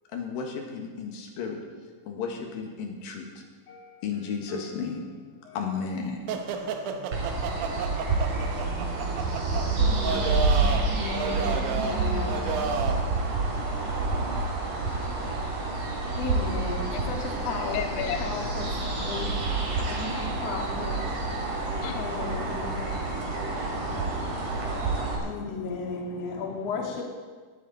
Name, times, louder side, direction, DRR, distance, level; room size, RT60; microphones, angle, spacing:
voice 1, 0.1-1.6 2.0-5.1 5.4-6.2 7.7-8.5, left 5 dB, 60° left, 2 dB, 2.8 m, -34 dB
sound 1, 6.3-13.1, right 5 dB, 80° right, 3.4 m, -32 dB
sound 2, 7.1-25.2, right 3 dB, 45° right, 3.5 m, -28 dB
voice 2, 9.8-12.6 13.8-13.9 16.1-19.5 19.9-21.0 21.9-23.7 25.2-27.0, left 4 dB, 45° left, 0 dB, 2.6 m, -35 dB
voice 3, 16.4-27.0, left 10 dB, 85° left, 8 dB, 2.3 m, -40 dB
19.0 x 13.5 x 4.1 m, 1.5 s
omnidirectional pair, 5.3 m